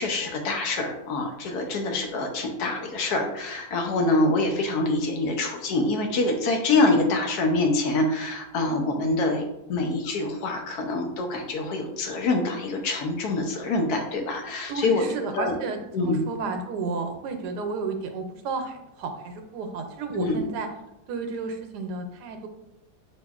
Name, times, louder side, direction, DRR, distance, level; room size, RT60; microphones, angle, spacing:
voice 1, 0.0-9.4 9.7-15.1 15.3-15.5 15.9-16.2 20.1-20.4, left 2 dB, 75° left, 3 dB, 1.1 m, -25 dB
voice 2, 14.7-20.7 21.1-22.5, right 3 dB, 85° right, 5 dB, 1.2 m, -32 dB
4.7 x 2.8 x 2.3 m, 0.87 s
omnidirectional pair, 1.7 m